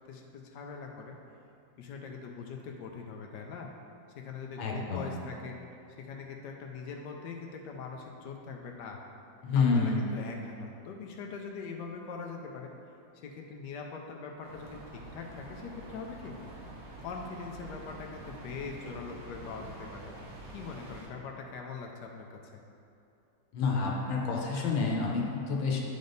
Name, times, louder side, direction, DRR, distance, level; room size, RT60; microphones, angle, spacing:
voice 1, 0.1-1.1 1.8-3.7 4.2-5.6 6.0-9.0 9.5-12.7 13.2-16.4 17.0-20.1 20.5-22.6, left 5 dB, 75° left, 1 dB, 1.1 m, -42 dB
voice 2, 4.6-5.1 9.4-10.0 23.5-25.8, left 4 dB, 90° left, -1 dB, 1.7 m, -28 dB
sound 1, 14.4-21.1, right 1 dB, 80° right, 1.7 m, -47 dB
10.0 x 3.5 x 3.9 m, 2.7 s
omnidirectional pair, 2.0 m